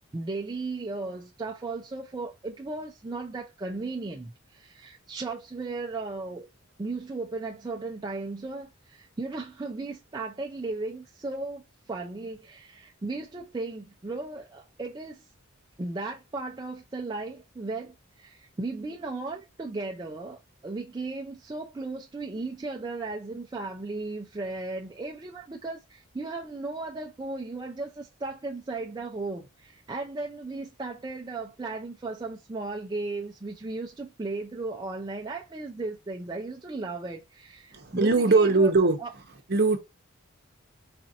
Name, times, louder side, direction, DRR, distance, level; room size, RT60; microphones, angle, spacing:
voice 1, 0.1-6.5 6.8-15.3 15.8-38.7 39.0-39.1, right 3 dB, 20° right, 0.3 m, -36 dB
voice 2, 37.7-39.8, right 3 dB, 45° right, 0.7 m, -22 dB
4.1 x 2.5 x 2.7 m
head